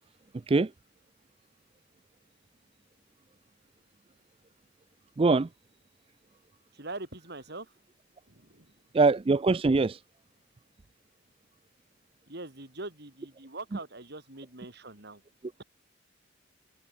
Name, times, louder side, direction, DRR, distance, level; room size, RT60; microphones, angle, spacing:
voice 1, 0.3-0.7 5.2-5.5 8.9-10.0, right 3 dB, 25° right, 0.4 m, -23 dB
voice 2, 6.7-7.7 8.3-8.7 12.3-15.2, right 2 dB, 55° right, 4.6 m, -43 dB
head